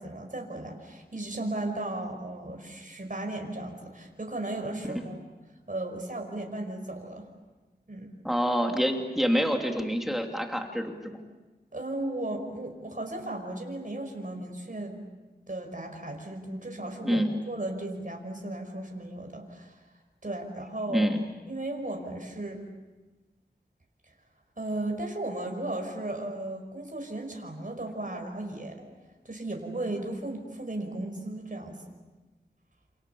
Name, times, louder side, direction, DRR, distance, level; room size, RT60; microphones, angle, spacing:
voice 1, 0.0-5.2 5.7-7.3 7.9-8.1 11.7-15.0 15.5-19.8 20.2-21.1 21.5-22.6 24.6-28.9 29.3-31.8, right 1 dB, 50° right, 2 dB, 5.4 m, -35 dB
voice 2, 8.2-11.2 17.0-17.3 20.9-21.2, equal, ahead, 3 dB, 2.9 m, -27 dB
29.5 x 28.5 x 7.1 m, 1.2 s
wide cardioid pair, 60°, 18 cm